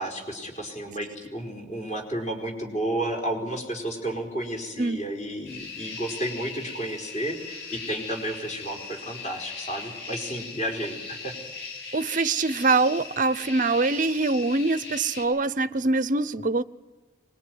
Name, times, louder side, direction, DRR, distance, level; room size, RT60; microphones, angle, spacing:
voice 1, 0.0-11.3, right 1 dB, 35° left, 4.9 m, -32 dB
sound 1, 5.5-15.3, left 4 dB, 55° left, 7.9 m, -39 dB
voice 2, 11.9-16.6, right 3 dB, 40° right, 0.8 m, -24 dB
24.0 x 21.5 x 9.5 m
head